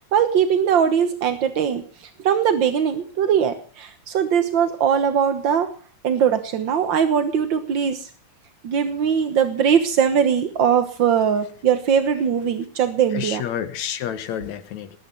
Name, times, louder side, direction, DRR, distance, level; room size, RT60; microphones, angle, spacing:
voice 1, 0.1-5.7 6.0-8.1 8.6-13.4, right 8 dB, 60° right, 9 dB, 1.3 m, -20 dB
voice 2, 13.1-15.0, left 9 dB, 70° left, 12 dB, 2.6 m, -29 dB
19.5 x 10.0 x 7.0 m, 0.42 s
omnidirectional pair, 3.5 m